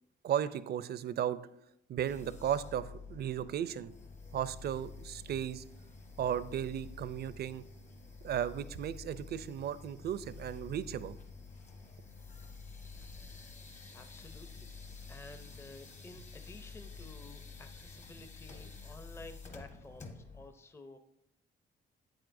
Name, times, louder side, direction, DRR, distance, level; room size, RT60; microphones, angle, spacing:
voice 1, 0.2-1.4 1.9-3.9 4.3-5.6 6.2-7.6 8.2-11.2, right 9 dB, 55° right, 15 dB, 0.4 m, -35 dB
sound 1, 2.0-20.5, left 4 dB, 35° left, 1.2 m, -49 dB
voice 2, 13.9-14.7 15.1-21.0, left 2 dB, 15° left, 8 dB, 0.5 m, -53 dB
8.7 x 7.7 x 2.6 m, 0.82 s
cardioid pair, 90°, 20 cm